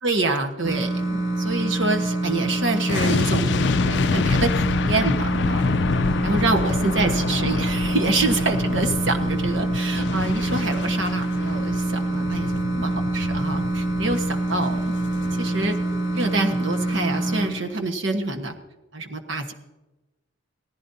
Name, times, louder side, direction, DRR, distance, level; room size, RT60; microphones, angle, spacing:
voice 1, 0.0-5.7 6.2-14.8 15.4-15.7 16.1-18.5 18.9-19.5, right 3 dB, 75° right, 4 dB, 1.4 m, -26 dB
sound 1, 0.6-17.5, right 2 dB, 15° right, 1.7 m, -26 dB
sound 2, 2.9-16.0 16.3-16.5, left 5 dB, 60° left, 0.3 m, -27 dB
17.5 x 15.0 x 2.8 m, 1.1 s
head